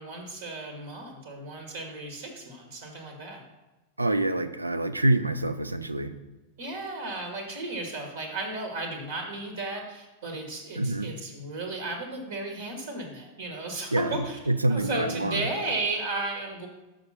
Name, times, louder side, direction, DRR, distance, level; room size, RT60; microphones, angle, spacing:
voice 1, 0.0-3.4 6.6-14.4 14.7-16.7, right 2 dB, 60° right, 1 dB, 1.5 m, -34 dB
voice 2, 4.0-6.1 10.8-11.1 13.9-15.5, right 1 dB, 85° right, 11 dB, 0.5 m, -26 dB
6.6 x 5.1 x 5.6 m, 1.0 s
figure-of-eight pair, 90°, 0 cm